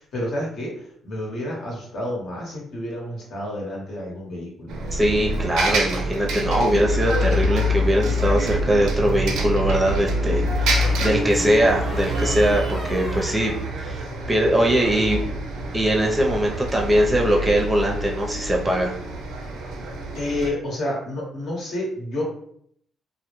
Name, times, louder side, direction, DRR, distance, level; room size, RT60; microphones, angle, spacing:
voice 1, 0.0-4.8 20.1-22.2, left 1 dB, 65° left, -3 dB, 1.0 m, -30 dB
Bus, 4.7-20.5, equal, 85° right, 0.4 m, -26 dB
voice 2, 4.9-13.5 13.8-14.0 14.3-15.2 15.7-19.0, equal, 15° right, -1 dB, 0.5 m, -21 dB
sound 1, 8.1-8.9 10.8-14.3 14.6-15.1, left 1 dB, 35° left, 0.7 m, -35 dB
2.1 x 2.1 x 3.0 m, 0.69 s
cardioid pair, 90°, 0 cm